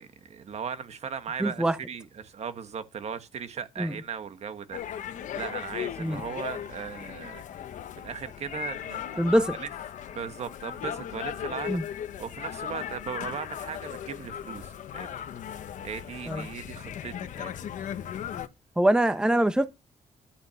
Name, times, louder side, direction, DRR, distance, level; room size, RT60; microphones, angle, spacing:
voice 1, 0.0-7.7 7.9-9.7 10.1-17.7, right 7 dB, 55° right, 1.5 m, -38 dB
voice 2, 1.4-1.8 3.8-3.9 6.0-6.2 9.2-9.5 11.7-11.8 16.3-16.5 18.8-19.7, right 1 dB, 5° right, 1.0 m, -23 dB
sound 1, 4.7-18.5, left 10 dB, 75° left, 1.1 m, -37 dB
12.0 x 5.8 x 7.0 m
cardioid pair, 110°, 13 cm